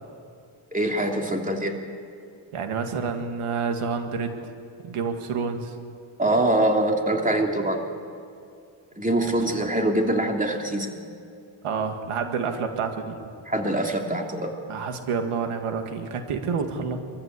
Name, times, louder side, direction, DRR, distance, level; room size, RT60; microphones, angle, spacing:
voice 1, 0.7-1.8 6.2-7.8 9.0-11.0 13.5-14.5, right 1 dB, 15° right, 2 dB, 3.0 m, -24 dB
voice 2, 2.5-4.4 4.8-5.7 11.6-13.3 14.7-17.0, right 5 dB, 90° right, 6 dB, 2.1 m, -28 dB
23.5 x 14.5 x 8.4 m, 2.4 s
cardioid pair, 75°, 49 cm